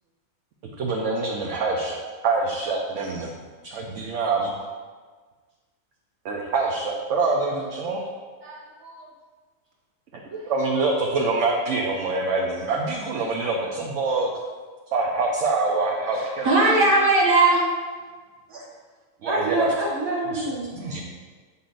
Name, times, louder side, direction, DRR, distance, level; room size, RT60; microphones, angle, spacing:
voice 1, 0.8-2.0 2.2-3.3 3.6-4.7 6.2-8.0 10.1-10.2 10.5-14.3 14.9-16.5 19.2-19.7 20.3-21.0, right 3 dB, 70° right, -2 dB, 1.0 m, -25 dB
voice 2, 8.4-9.1 19.3-20.7, right 1 dB, 20° right, -6 dB, 1.4 m, -28 dB
voice 3, 16.2-17.6 18.5-18.6 20.8-21.0, right 2 dB, 90° right, -4 dB, 1.7 m, -19 dB
8.2 x 5.6 x 2.5 m, 1.4 s
omnidirectional pair, 1.4 m